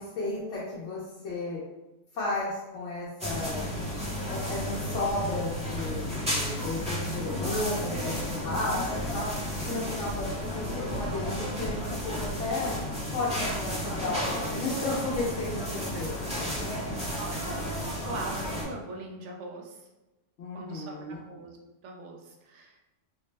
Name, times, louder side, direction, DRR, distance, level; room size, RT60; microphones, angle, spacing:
voice 1, 0.0-1.6 2.1-3.6 4.3-9.3 9.7-11.8 12.0-12.7 13.1-16.9 20.4-21.2, left 2 dB, 85° left, -6 dB, 1.0 m, -34 dB
sound 1, 3.2-18.6, equal, 5° right, 0.6 m, -32 dB
voice 2, 17.2-17.6 18.0-19.9 20.5-21.6 21.8-22.8, right 2 dB, 75° right, 1 dB, 0.9 m, -41 dB
3.3 x 2.0 x 3.2 m, 1.0 s
omnidirectional pair, 1.2 m